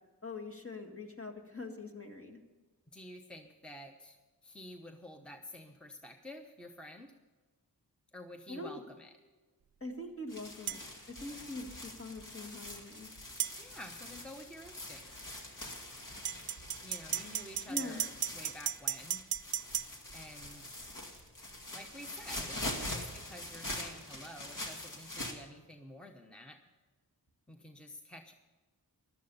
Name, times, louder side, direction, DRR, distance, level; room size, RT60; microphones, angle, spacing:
voice 1, 0.2-2.4 8.5-8.8 9.8-10.8 11.1-13.1 17.7-18.0, left 2 dB, 35° left, 3 dB, 2.1 m, -43 dB
voice 2, 2.9-7.1 8.1-9.1 13.6-15.2 16.8-19.2 20.1-20.9 21.7-26.6 27.5-28.3, left 1 dB, 5° left, 4 dB, 1.0 m, -50 dB
sound 1, 10.3-25.3, left 1 dB, 50° left, 2.3 m, -44 dB
sound 2, 10.7-10.8 13.4-13.6 16.2-19.9, right 10 dB, 65° right, 0.5 m, -35 dB
15.0 x 12.0 x 5.6 m, 1.3 s
wide cardioid pair, 75°, 39 cm